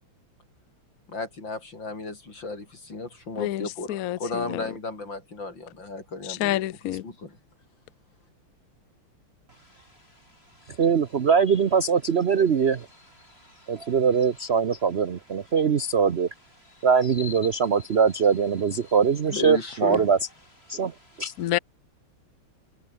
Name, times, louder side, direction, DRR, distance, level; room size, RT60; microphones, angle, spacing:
voice 1, 1.1-6.6 6.8-7.4 19.3-20.1, left 3 dB, 60° left, 6.2 m, -34 dB
voice 2, 3.4-4.6 6.3-7.0 21.4-21.6, left 14 dB, 80° left, 0.8 m, -28 dB
voice 3, 10.8-12.9 13.7-16.3 16.8-20.2 20.7-21.3, right 6 dB, 80° right, 0.5 m, -22 dB
open air
omnidirectional pair, 2.4 m